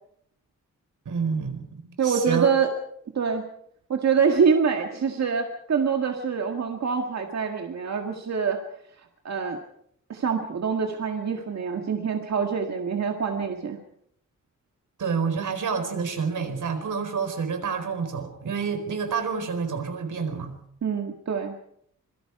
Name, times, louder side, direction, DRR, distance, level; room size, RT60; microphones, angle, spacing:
voice 1, 1.0-2.5 15.0-20.6, right 5 dB, 85° right, 6 dB, 4.6 m, -28 dB
voice 2, 2.0-2.7 3.1-3.5 3.9-8.6 9.2-9.6 10.1-13.8 20.8-21.5, right 6 dB, 60° right, 3 dB, 1.9 m, -25 dB
26.0 x 23.0 x 4.8 m, 0.71 s
wide cardioid pair, 170°, 30 cm